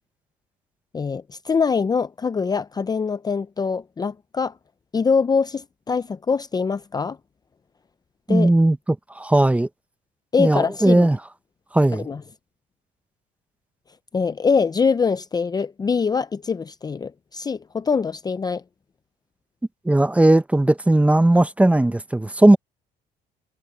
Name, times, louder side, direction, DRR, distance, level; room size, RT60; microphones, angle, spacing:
voice 1, 0.9-4.5 4.9-7.2 8.3-8.5 10.3-11.1 11.9-12.2 14.1-18.6, left 5 dB, 25° left, 0.6 m, -23 dB
voice 2, 8.3-9.7 10.4-11.2 11.7-12.1 19.8-22.6, right 1 dB, 10° right, 0.9 m, -17 dB
cardioid pair, 110°, 17 cm